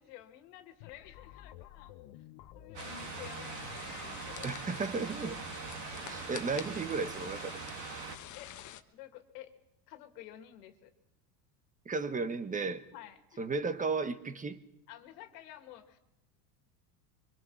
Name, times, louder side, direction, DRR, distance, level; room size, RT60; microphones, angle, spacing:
voice 1, 0.0-2.0 2.5-4.6 8.3-8.5 8.9-9.5 9.9-10.9 12.9-13.4 14.9-16.0, left 13 dB, 75° left, 8 dB, 2.4 m, -51 dB
sound 1, 0.8-7.7, left 15 dB, 55° left, 1.1 m, -53 dB
sound 2, 2.7-8.2, right 8 dB, 60° right, 2.4 m, -43 dB
sound 3, 2.8-8.8, left 11 dB, 35° left, 1.2 m, -47 dB
voice 2, 4.4-5.4 6.1-7.6 11.8-12.8 13.4-14.6, right 4 dB, 15° right, 11 dB, 1.3 m, -34 dB
24.5 x 22.0 x 6.3 m, 0.87 s
supercardioid pair, 120°, 48 cm